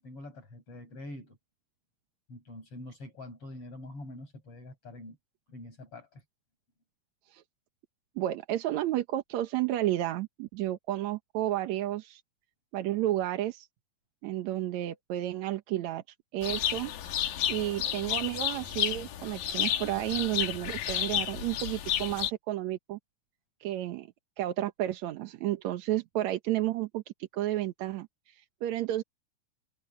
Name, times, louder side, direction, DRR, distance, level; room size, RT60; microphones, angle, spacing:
voice 1, 0.0-1.4 2.3-5.2 5.5-6.2, left 1 dB, 40° left, 8.3 m, -45 dB
voice 2, 8.2-12.2 12.7-13.7 14.2-16.0 16.3-16.9 17.5-23.0 23.6-24.1 24.4-29.0, right 14 dB, 65° right, 2.0 m, -32 dB
sound 1, 16.4-22.3, left 10 dB, 90° left, 3.3 m, -31 dB
omnidirectional pair, 3.9 m